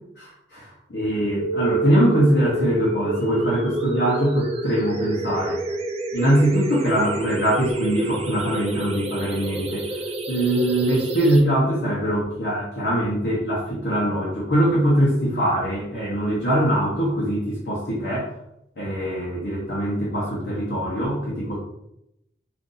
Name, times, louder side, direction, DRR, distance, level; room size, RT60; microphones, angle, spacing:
voice 1, 0.2-0.6 0.9-5.6 6.1-9.9 10.3-18.3 18.8-21.6, right 1 dB, 60° left, -7 dB, 0.8 m, -22 dB
sound 1, 1.4-11.4, right 2 dB, 35° right, 0.4 m, -29 dB
2.6 x 2.5 x 3.8 m, 0.83 s
head